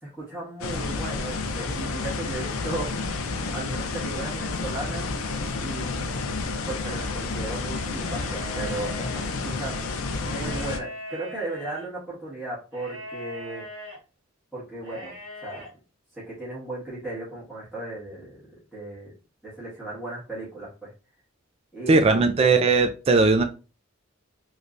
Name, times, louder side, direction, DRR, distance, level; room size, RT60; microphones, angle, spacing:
voice 1, 0.0-2.9 3.5-5.1 5.6-6.0 6.6-9.7 10.2-13.6 14.5-15.1 15.4-15.6 16.1-18.5 18.7-19.1 19.4-20.9 21.7-22.3, right 2 dB, ahead, -11 dB, 1.6 m, -36 dB
sound 1, 0.6-10.8, left 3 dB, 85° left, 0.6 m, -30 dB
sound 2, 7.9-9.2 10.2-11.9 12.7-14.0 14.8-15.7, equal, 65° right, 1.4 m, -40 dB
voice 2, 21.9-23.4, right 3 dB, 30° right, 6 dB, 0.3 m, -19 dB
3.2 x 3.1 x 2.5 m, 0.32 s
head